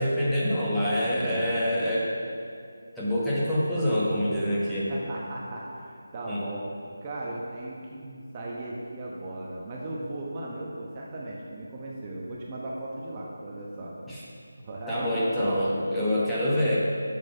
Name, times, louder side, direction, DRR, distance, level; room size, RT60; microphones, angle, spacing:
voice 1, 0.0-2.1 3.0-4.9 6.3-6.4 14.1-14.2 14.9-16.8, equal, ahead, -11 dB, 1.0 m, -26 dB
voice 2, 1.1-1.5 4.9-6.6 7.0-13.9 14.6-15.1 15.3-16.0 16.4-16.5, right 1 dB, 25° right, -3 dB, 1.0 m, -37 dB
7.5 x 7.4 x 5.5 m, 2.3 s
figure-of-eight pair, 170°, 0 cm